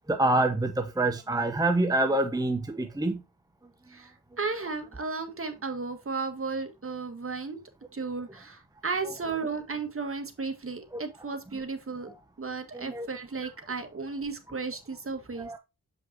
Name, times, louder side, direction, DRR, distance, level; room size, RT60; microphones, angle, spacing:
voice 1, 0.1-3.2 10.9-11.0 12.7-13.1 15.4-15.6, right 2 dB, 10° right, 0.9 m, -26 dB
voice 2, 3.9-7.6 7.9-12.1 12.4-15.5, right 4 dB, 35° right, 1.7 m, -34 dB
7.3 x 5.3 x 2.8 m
cardioid pair, 70°, 37 cm